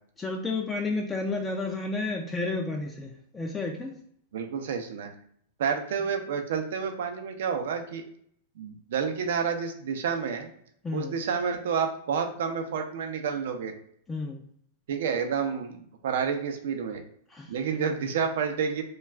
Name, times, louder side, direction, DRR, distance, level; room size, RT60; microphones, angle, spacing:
voice 1, 0.2-3.9 10.8-11.1 14.1-14.4 17.3-17.5, left 3 dB, 15° left, 1 dB, 0.4 m, -31 dB
voice 2, 4.3-5.1 5.6-8.0 8.6-10.5 10.9-13.7 14.9-17.0 17.5-18.8, right 6 dB, 75° right, 5 dB, 0.5 m, -29 dB
2.3 x 2.3 x 3.2 m, 0.65 s
hypercardioid pair, 120°, 0 cm